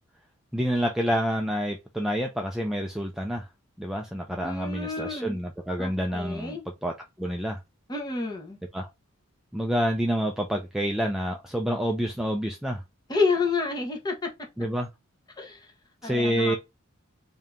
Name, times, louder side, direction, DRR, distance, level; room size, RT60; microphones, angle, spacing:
voice 1, 0.5-3.4 3.8-6.9 7.2-7.6 8.7-8.9 9.5-12.8 14.6-14.9 16.0-16.6, equal, ahead, 0.4 m, -28 dB
voice 2, 4.4-5.4 5.8-6.6 7.9-8.6 13.1-14.3 15.4-15.7 16.0-16.6, left 4 dB, 20° left, 1.0 m, -29 dB
3.6 x 2.8 x 3.5 m
head